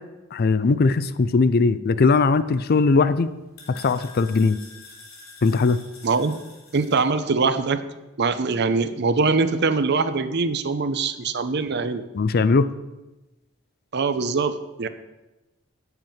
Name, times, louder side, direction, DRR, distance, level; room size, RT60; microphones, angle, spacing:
voice 1, 0.3-3.3 3.7-4.6 5.4-5.8 12.1-12.7, left 4 dB, 50° left, 14 dB, 0.4 m, -19 dB
sound 1, 2.4-7.0, left 3 dB, 85° left, 3.3 m, -47 dB
voice 2, 6.0-6.4 6.7-7.9 8.2-12.0 13.9-14.9, right 4 dB, 55° right, 11 dB, 0.7 m, -23 dB
9.0 x 7.9 x 5.7 m, 1.1 s
head